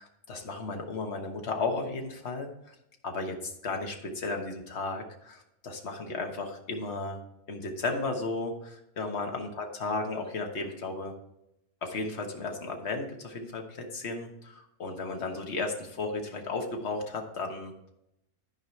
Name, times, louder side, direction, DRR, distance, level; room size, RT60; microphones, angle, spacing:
voice 1, 0.0-2.7 3.0-7.2 7.5-11.1 11.8-17.9, left 3 dB, 50° left, 3 dB, 1.4 m, -34 dB
12.0 x 4.9 x 4.4 m, 0.83 s
omnidirectional pair, 1.5 m